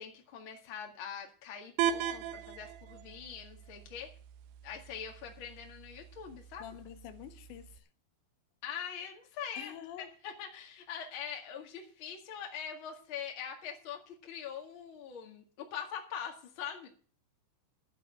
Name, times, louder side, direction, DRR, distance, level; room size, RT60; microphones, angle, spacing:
voice 1, 0.0-4.1 4.6-6.6 8.6-9.7 10.0-16.9, left 8 dB, 40° left, 1.9 m, -43 dB
sound 1, 1.8-7.8, right 10 dB, 75° right, 2.7 m, -39 dB
voice 2, 6.6-7.9 9.6-10.1, left 11 dB, 85° left, 3.2 m, -47 dB
11.0 x 8.0 x 7.6 m
omnidirectional pair, 5.1 m